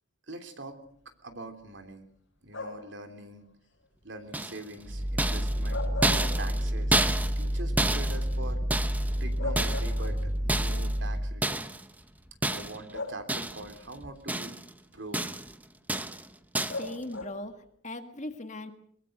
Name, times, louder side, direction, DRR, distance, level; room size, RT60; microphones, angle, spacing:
voice 1, 0.3-0.8 1.2-2.0 2.4-3.4 4.0-5.8 6.4-7.0 7.4-8.6 9.2-11.7 12.5-14.5 14.9-15.2, right 2 dB, 60° right, 6 dB, 3.2 m, -43 dB
sound 1, 2.5-3.0 5.5-6.9 7.3-7.4 8.9-9.0 9.4-10.5 11.6-11.7 12.9-13.7 16.7-17.6, left 2 dB, 60° left, 6.8 m, -38 dB
sound 2, 4.3-4.8 5.2-9.2 9.6-10.1 10.5-11.0 11.4-11.8 12.4-12.9 13.3-13.8 14.0-14.7 15.1-15.5 15.9-16.3 16.5-16.9, right 2 dB, 10° right, 0.8 m, -30 dB
sound 3, 4.8-11.4, equal, 35° right, 2.8 m, -29 dB
voice 2, 16.7-18.7, left 1 dB, 35° left, 7 dB, 1.8 m, -39 dB
22.5 x 22.5 x 6.6 m, 0.65 s
head